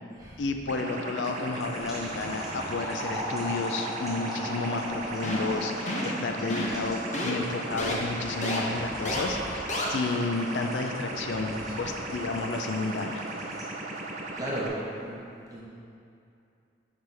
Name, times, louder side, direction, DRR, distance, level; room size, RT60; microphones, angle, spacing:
voice 1, 0.4-13.2, left 3 dB, 85° left, 5 dB, 0.5 m, -31 dB
sound 1, 0.7-14.7, right 2 dB, 40° right, 0.5 m, -37 dB
sound 2, 1.2-13.9, equal, ahead, 1.5 m, -40 dB
voice 2, 2.1-2.6 9.0-9.5 11.3-11.7 14.3-15.1 15.5-15.6, right 1 dB, 20° right, -7 dB, 1.2 m, -37 dB
sound 3, 5.2-5.5 5.9-6.1 6.5-6.8 7.1-7.3 7.8-7.9 8.4-8.6 9.1-9.2 9.7-9.9, left 1 dB, 40° left, 0.8 m, -30 dB
6.4 x 5.9 x 3.4 m, 2.6 s
head